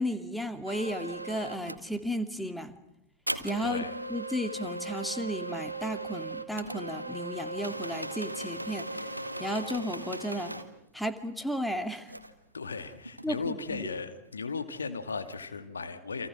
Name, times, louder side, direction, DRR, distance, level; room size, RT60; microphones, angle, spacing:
voice 1, 0.0-2.7 3.4-8.9 9.4-10.5 10.9-12.1 13.2-13.9, equal, ahead, 8 dB, 2.5 m, -34 dB
sound 1, 0.7-1.9 3.3-10.7 12.1-12.3 12.6-13.8 15.1-15.4, right 2 dB, 85° right, 1.9 m, -38 dB
voice 2, 3.6-4.0 12.5-16.3, left 4 dB, 75° left, 9 dB, 2.4 m, -36 dB
29.5 x 27.0 x 6.2 m, 0.79 s
figure-of-eight pair, 90°, 0 cm